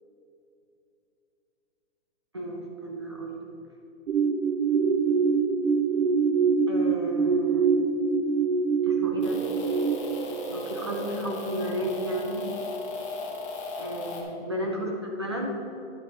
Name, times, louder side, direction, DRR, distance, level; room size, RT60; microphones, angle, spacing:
voice 1, 2.3-3.5 6.7-7.7 8.8-9.4 10.5-12.5 13.8-15.6, right 1 dB, 25° right, -1 dB, 0.4 m, -32 dB
sound 1, 4.1-10.0, right 5 dB, 70° right, 0.7 m, -24 dB
sound 2, 9.2-14.2, left 1 dB, 25° left, 0.8 m, -36 dB
9.9 x 7.2 x 3.7 m, 2.7 s
hypercardioid pair, 175°, 37 cm